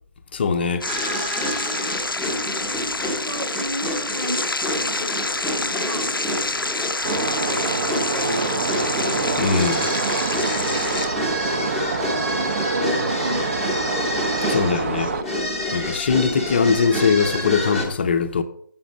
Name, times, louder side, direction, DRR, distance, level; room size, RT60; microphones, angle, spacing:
voice 1, 0.3-0.9 9.4-9.9 14.5-15.1 15.7-18.4, left 5 dB, 30° left, 0.6 m, -21 dB
sound 1, 0.8-11.1, left 2 dB, 90° left, 0.5 m, -28 dB
sound 2, 0.9-17.8, equal, ahead, 0.9 m, -28 dB
voice 2, 1.7-2.1 3.0-6.1 7.4-9.0 11.1-13.9 14.3-15.3, right 1 dB, 80° right, 1.6 m, -34 dB
sound 3, 7.0-15.2, right 4 dB, 35° right, 0.7 m, -26 dB
7.2 x 5.9 x 6.4 m
figure-of-eight pair, 150°, 11 cm